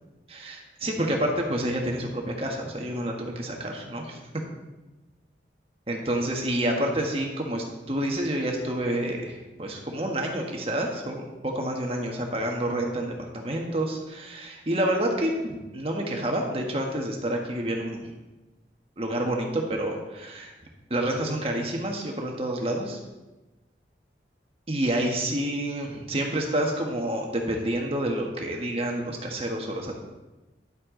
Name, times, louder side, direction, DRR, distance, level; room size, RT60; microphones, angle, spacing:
voice 1, 0.3-4.2 5.9-18.2 19.0-20.5 20.9-23.0 24.7-29.9, right 1 dB, 35° right, 1 dB, 1.4 m, -28 dB
11.0 x 7.9 x 3.8 m, 1.1 s
head